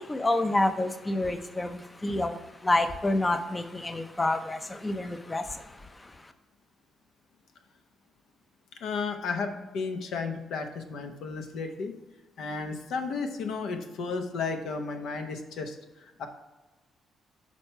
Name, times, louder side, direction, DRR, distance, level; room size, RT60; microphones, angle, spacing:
voice 1, 0.0-6.3, left 2 dB, 20° left, 9 dB, 0.5 m, -29 dB
voice 2, 8.8-11.9 12.4-15.8 16.0-16.3, left 4 dB, 75° left, 5 dB, 0.8 m, -33 dB
6.3 x 4.3 x 4.4 m, 1.1 s
cardioid pair, 90°, 0 cm